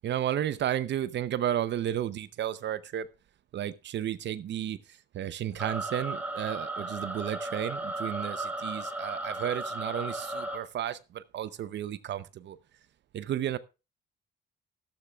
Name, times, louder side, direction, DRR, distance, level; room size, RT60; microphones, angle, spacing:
voice 1, 0.0-3.1 3.5-12.6 13.1-13.6, right 11 dB, 65° right, 0.7 m, -33 dB
sound 1, 5.6-10.6, right 2 dB, 10° right, 2.6 m, -35 dB
13.5 x 13.0 x 2.4 m
cardioid pair, 90°, 20 cm